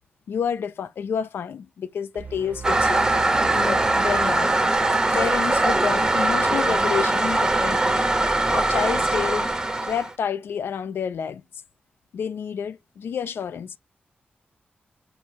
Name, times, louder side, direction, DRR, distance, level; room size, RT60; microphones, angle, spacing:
voice 1, 0.3-3.0 3.5-4.5 5.1-8.0 8.5-9.5 9.8-11.4 12.1-13.7, left 7 dB, 85° left, 0.4 m, -29 dB
sound 1, 2.1-5.5, right 4 dB, 50° right, 0.8 m, -38 dB
Toilet flush, 2.6-10.1, right 2 dB, 20° right, 0.6 m, -21 dB
5.4 x 2.6 x 3.0 m
wide cardioid pair, 110°, 4 cm